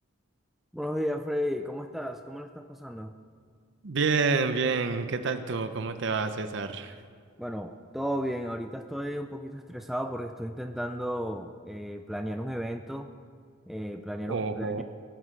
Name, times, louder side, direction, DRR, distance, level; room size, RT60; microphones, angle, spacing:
voice 1, 0.7-3.1 7.4-13.1 13.7-14.8, equal, ahead, 5 dB, 0.4 m, -34 dB
voice 2, 3.8-6.9 14.3-14.8, right 4 dB, 60° right, 9 dB, 0.6 m, -28 dB
19.0 x 11.5 x 3.3 m, 2.1 s
head